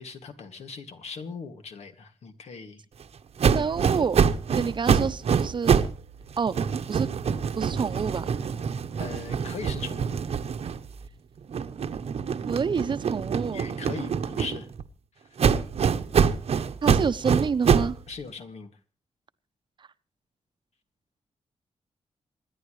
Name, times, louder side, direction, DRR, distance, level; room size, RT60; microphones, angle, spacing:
voice 1, 0.0-2.8 4.5-4.7 9.0-10.1 13.5-14.7 18.1-18.7, left 4 dB, 75° left, 2.2 m, -39 dB
sound 1, 3.4-6.0 6.3-11.1 11.5-14.8 15.4-18.0, right 6 dB, 65° right, 1.0 m, -25 dB
voice 2, 3.5-4.2 4.5-5.9 6.4-6.6 6.9-7.1 7.6-8.3 12.5-13.7 16.8-18.0 19.8-19.9, right 6 dB, 45° right, 0.8 m, -28 dB
27.0 x 11.0 x 3.2 m
wide cardioid pair, 140°, 11 cm